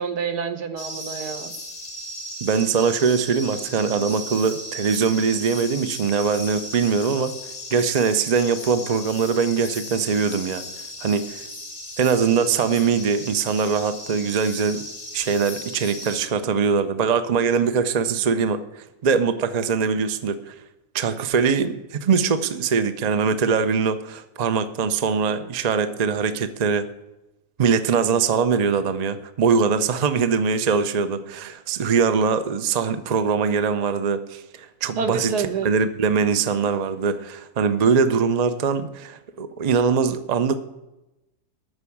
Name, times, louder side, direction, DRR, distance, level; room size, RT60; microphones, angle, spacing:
voice 1, 0.0-1.5 35.0-35.7, right 5 dB, 75° right, 7 dB, 1.6 m, -28 dB
sound 1, 0.8-16.3, left 1 dB, 35° left, 0.7 m, -36 dB
voice 2, 2.4-7.4 7.7-10.6 11.0-11.5 12.0-14.8 15.1-20.5 20.9-26.9 27.6-40.6, right 6 dB, 55° right, 10 dB, 0.4 m, -22 dB
13.0 x 4.7 x 8.5 m, 0.98 s
omnidirectional pair, 1.7 m